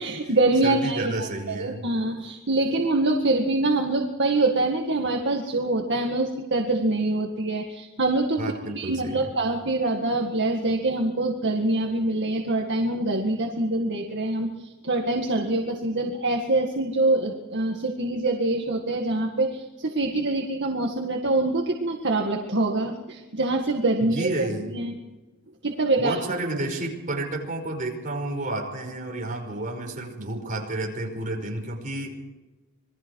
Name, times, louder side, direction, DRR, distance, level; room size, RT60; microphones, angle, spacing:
voice 1, 0.0-8.4 8.7-24.3 24.6-25.0 25.6-26.2, right 2 dB, 55° right, 2 dB, 2.0 m, -25 dB
voice 2, 0.6-1.8 8.4-9.3 24.0-24.7 26.0-32.1, right 2 dB, 35° right, 1 dB, 5.3 m, -31 dB
27.0 x 21.5 x 4.8 m, 1.1 s
head